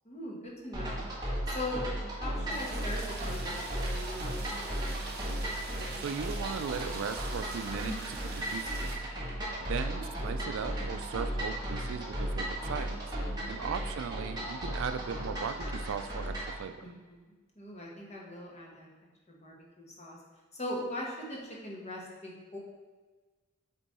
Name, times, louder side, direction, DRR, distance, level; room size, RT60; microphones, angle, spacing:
voice 1, 0.0-1.1 1.5-3.4 3.9-4.2 4.6-4.9 7.8-8.0 16.8-17.1 17.6-18.9 19.3-20.2 20.5-22.6, left 1 dB, 35° left, -3 dB, 1.3 m, -40 dB
sound 1, 0.7-16.6, right 1 dB, 20° right, 1.6 m, -35 dB
Rain, 2.5-8.9, right 3 dB, 50° right, 0.9 m, -44 dB
voice 2, 6.0-9.0 9.6-13.2 13.5-16.9, right 6 dB, 65° right, 10 dB, 0.4 m, -38 dB
8.1 x 3.0 x 4.2 m, 1.3 s
head